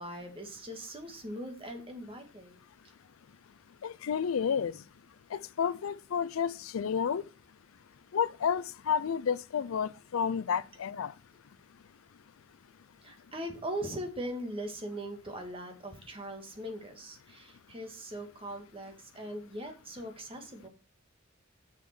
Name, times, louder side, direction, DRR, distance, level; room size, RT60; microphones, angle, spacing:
voice 1, 0.0-2.6 13.0-20.7, right 1 dB, 25° right, 1.9 m, -40 dB
voice 2, 3.8-4.8 5.3-7.2 8.1-11.1, left 7 dB, 90° left, 0.4 m, -31 dB
7.2 x 6.6 x 6.0 m
head